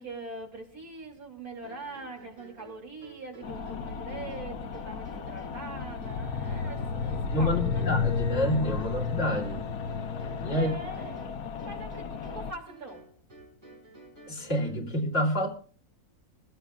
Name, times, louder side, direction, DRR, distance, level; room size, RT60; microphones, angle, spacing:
voice 1, 0.0-7.9 10.5-13.1, right 2 dB, 80° right, 3.3 m, -43 dB
sound 1, 1.6-14.9, right 3 dB, 35° right, 8.2 m, -51 dB
sound 2, 3.4-12.5, left 5 dB, 80° left, 1.3 m, -33 dB
voice 2, 7.3-9.7 10.4-10.7 14.3-15.5, equal, 55° left, 3.1 m, -28 dB
21.5 x 16.0 x 2.4 m
omnidirectional pair, 1.5 m